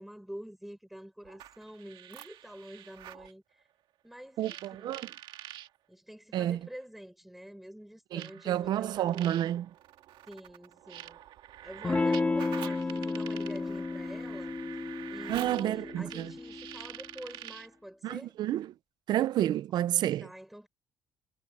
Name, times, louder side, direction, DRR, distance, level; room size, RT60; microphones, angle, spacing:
voice 1, 0.0-3.6 4.0-5.0 5.9-9.3 10.3-11.2 11.6-14.6 15.1-18.4 20.2-20.7, equal, ahead, 4.9 m, -47 dB
sound 1, 1.2-3.3 4.4-5.7 6.8-6.9 8.2-17.8, right 12 dB, 75° right, 2.1 m, -47 dB
voice 2, 4.4-5.1 6.3-6.6 8.1-9.7 15.3-16.3 18.0-18.7 19.1-20.3, right 12 dB, 60° right, 0.6 m, -30 dB
Electric guitar / Strum, 11.8-17.0, left 3 dB, 15° left, 2.4 m, -32 dB
cardioid pair, 165°, 8 cm